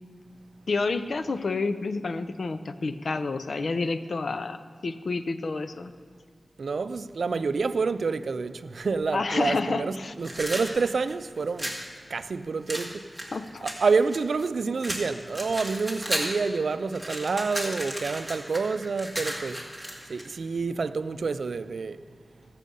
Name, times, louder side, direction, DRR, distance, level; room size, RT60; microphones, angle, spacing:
voice 1, 0.7-4.6 4.8-5.9 9.1-10.1 13.3-13.7, left 3 dB, 70° left, 0.6 m, -29 dB
voice 2, 6.6-11.7 12.1-13.1 13.6-19.6 20.1-22.0, right 4 dB, 85° right, 0.4 m, -28 dB
sound 1, 10.2-11.8 12.7-14.5 14.8-16.4 16.7-20.3, right 1 dB, 5° right, 2.1 m, -34 dB
16.0 x 7.4 x 5.4 m
wide cardioid pair, 100°, 0 cm